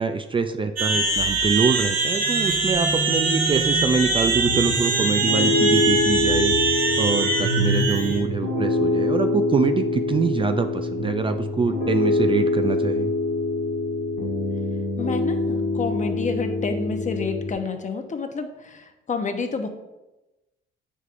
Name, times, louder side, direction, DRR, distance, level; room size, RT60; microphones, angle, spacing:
voice 1, 0.0-6.6 7.0-13.1, right 5 dB, 25° right, 8 dB, 0.4 m, -24 dB
sound 1, 0.8-8.2, right 3 dB, 45° right, 1.3 m, -22 dB
Piano, 4.4-17.5, left 3 dB, 90° left, 2.0 m, -25 dB
voice 2, 15.0-19.7, left 4 dB, 40° left, 6 dB, 0.8 m, -29 dB
7.3 x 6.5 x 2.5 m, 1.0 s
cardioid pair, 90°, 20 cm